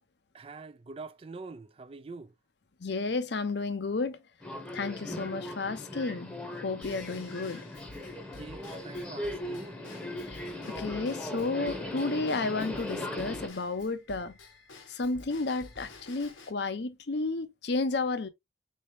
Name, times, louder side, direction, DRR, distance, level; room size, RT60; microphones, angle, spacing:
voice 1, 0.3-2.3 8.3-9.8, right 3 dB, 30° right, 0.3 m, -45 dB
voice 2, 2.8-4.2 4.7-7.7 10.2-14.4 14.9-18.3, left 3 dB, 60° left, 0.6 m, -32 dB
Subway metro underground, 4.4-13.5, left 1 dB, 5° left, 0.9 m, -39 dB
Drum kit / Drum / Bell, 6.8-16.5, left 2 dB, 90° left, 1.3 m, -51 dB
4.3 x 3.3 x 2.7 m
head